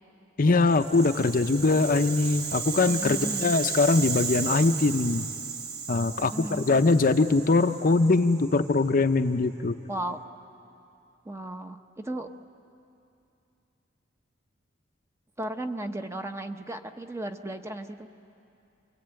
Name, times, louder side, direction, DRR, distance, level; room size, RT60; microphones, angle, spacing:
voice 1, 0.4-5.3 5.9-9.8, left 3 dB, 50° left, 8 dB, 0.7 m, -22 dB
Rattle (instrument), 0.6-8.8, right 5 dB, 60° right, 1.5 m, -35 dB
voice 2, 2.9-3.5 6.1-6.8 9.9-10.2 11.2-12.3 15.4-18.1, right 1 dB, 15° right, 6 dB, 0.9 m, -35 dB
29.0 x 22.5 x 9.0 m, 2.7 s
head